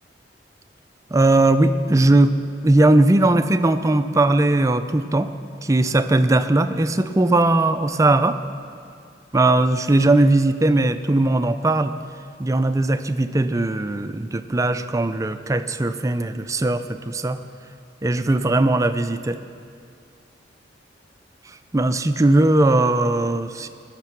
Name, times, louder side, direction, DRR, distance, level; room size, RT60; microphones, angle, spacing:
voice 1, 1.1-2.3 2.6-5.3 5.6-8.4 9.3-11.9 12.4-17.4 18.0-19.4 21.7-23.7, right 2 dB, 15° right, 10 dB, 0.4 m, -19 dB
20.0 x 6.7 x 5.9 m, 2.3 s
head